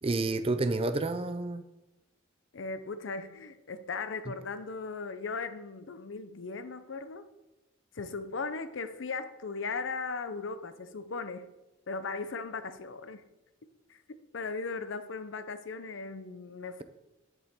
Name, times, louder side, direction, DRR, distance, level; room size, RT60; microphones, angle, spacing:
voice 1, 0.0-1.6 4.3-4.4, right 2 dB, 30° right, 10 dB, 0.5 m, -29 dB
voice 2, 2.5-7.2 7.9-11.5 11.9-13.3 13.9-14.0 14.3-16.8, left 4 dB, 70° left, 11 dB, 0.6 m, -37 dB
10.5 x 7.0 x 3.6 m, 1.0 s
head